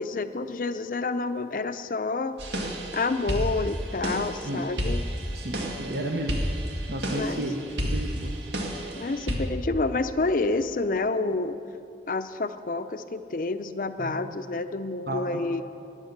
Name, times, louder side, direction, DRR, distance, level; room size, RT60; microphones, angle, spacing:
voice 1, 0.0-5.0 7.1-7.4 9.0-11.6 12.1-15.6, left 3 dB, 50° left, 11 dB, 0.5 m, -29 dB
sound 1, 2.4-9.4, equal, 80° right, 1.9 m, -31 dB
voice 2, 5.3-6.4 6.9-7.5 7.8-8.3 14.0-14.1 15.1-15.2, right 1 dB, 65° right, 2 dB, 0.9 m, -32 dB
13.5 x 10.0 x 6.6 m, 2.7 s
head